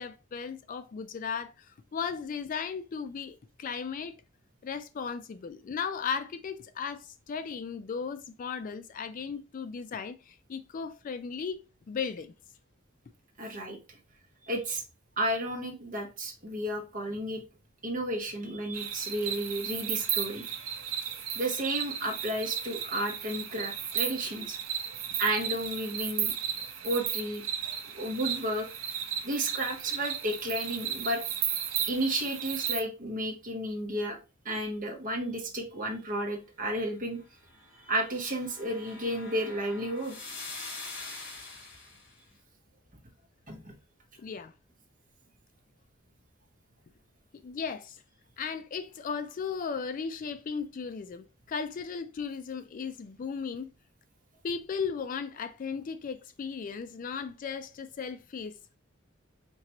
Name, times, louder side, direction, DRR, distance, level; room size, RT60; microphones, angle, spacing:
voice 1, 0.0-4.2 4.6-11.6 11.9-12.3 44.2-44.5 47.4-48.0 48.4-53.7 54.4-58.5, left 6 dB, 40° left, 0.3 m, -36 dB
voice 2, 13.4-14.0 14.4-14.8 15.2-17.4 17.8-20.7 21.3-24.6 25.2-26.3 26.8-27.5 27.9-28.7 29.2-31.2 31.9-34.2 34.4-37.2 37.9-40.2 43.5-43.7, right 1 dB, 40° right, 1.0 m, -32 dB
sound 1, 18.7-32.8, right 8 dB, 85° right, 0.7 m, -34 dB
sound 2, 37.5-42.1, left 3 dB, 60° left, 2.0 m, -44 dB
4.6 x 2.8 x 2.8 m
head